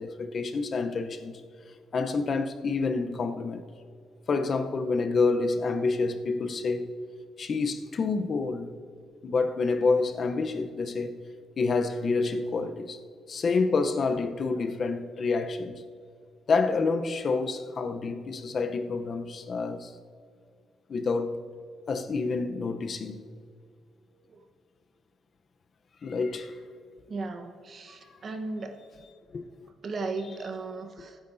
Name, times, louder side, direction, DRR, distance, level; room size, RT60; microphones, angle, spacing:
voice 1, 0.0-1.4 1.9-3.6 4.3-6.9 7.4-8.8 9.2-11.2 11.6-13.0 13.3-15.8 16.5-19.9 20.9-21.4 21.9-23.2 26.0-26.6 29.3-29.5, left 4 dB, 45° left, 0.8 m, -28 dB
voice 2, 27.1-28.8 29.8-31.2, right 3 dB, 45° right, 1.2 m, -36 dB
23.0 x 9.7 x 2.7 m
cardioid pair, 115°, 0 cm